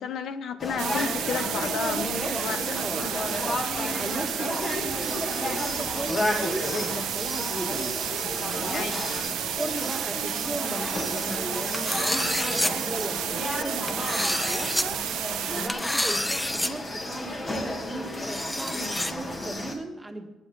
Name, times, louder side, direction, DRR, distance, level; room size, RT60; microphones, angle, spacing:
voice 1, 0.0-2.1 2.4-2.8 8.7-8.9, left 6 dB, 70° left, 11 dB, 0.9 m, -32 dB
sound 1, 0.6-19.7, left 1 dB, 35° left, 2.8 m, -32 dB
sound 2, 0.8-15.7, right 11 dB, 90° right, 0.9 m, -32 dB
voice 2, 1.8-3.1 3.4-3.7 3.9-8.0 8.6-9.0 9.6-15.0 15.5-20.3, right 2 dB, 15° right, 4 dB, 1.9 m, -36 dB
sound 3, 11.7-12.7 13.9-14.8 15.7-16.7 17.0-17.1 18.1-19.1, left 1 dB, 10° left, 0.9 m, -28 dB
17.0 x 10.0 x 4.0 m, 1.1 s
cardioid pair, 90°, 0 cm